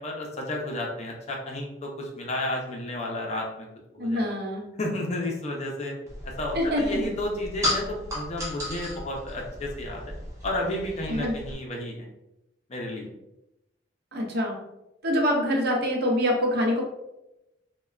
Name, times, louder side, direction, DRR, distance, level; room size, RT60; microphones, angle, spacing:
voice 1, 0.0-3.7 3.9-4.3 4.8-5.9 6.2-10.1 10.4-12.1 12.7-13.1, left 1 dB, 40° left, 0 dB, 0.5 m, -32 dB
voice 2, 4.0-4.7 6.5-7.1 11.1-11.4 14.1-14.6 15.0-16.8, equal, 60° right, 0 dB, 0.6 m, -25 dB
sound 1, 6.1-11.6, left 1 dB, 15° right, 0.7 m, -34 dB
3.2 x 2.1 x 2.3 m, 0.90 s
head